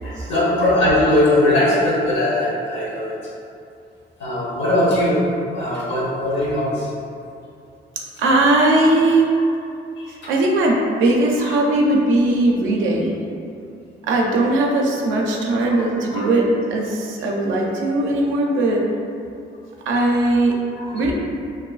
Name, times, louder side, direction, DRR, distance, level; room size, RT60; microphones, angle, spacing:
voice 1, 0.0-3.3 4.2-7.0 10.0-10.3 11.4-11.7 15.6-15.7 16.0-16.2 20.8-21.0, left 1 dB, 65° left, -7 dB, 0.8 m, -20 dB
voice 2, 8.2-9.3 10.1-13.1 14.0-18.8 19.9-20.6 20.9-21.1, right 2 dB, 80° right, -1 dB, 0.4 m, -19 dB
2.5 x 2.4 x 2.3 m, 2.5 s
cardioid pair, 90°, 20 cm